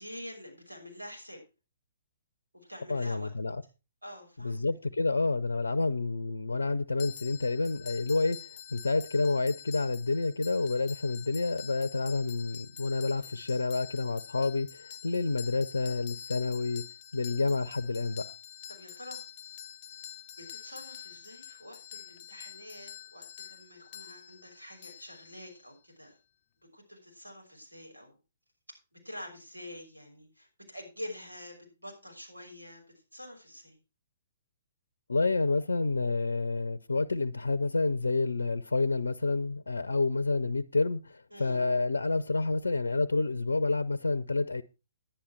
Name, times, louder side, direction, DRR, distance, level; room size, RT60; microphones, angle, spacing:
voice 1, 0.0-1.4 2.5-3.3 4.0-4.6 13.1-13.3 18.7-19.2 20.4-26.2 26.6-28.2 28.7-32.8 33.1-33.8 41.3-41.6, left 1 dB, 85° right, 5.8 m, -46 dB
voice 2, 2.9-3.6 4.4-16.8 17.1-18.3 35.1-44.6, left 3 dB, 75° left, 0.7 m, -29 dB
sound 1, 7.0-25.8, left 10 dB, 40° left, 0.7 m, -47 dB
10.5 x 10.0 x 4.6 m
figure-of-eight pair, 120°, 0 cm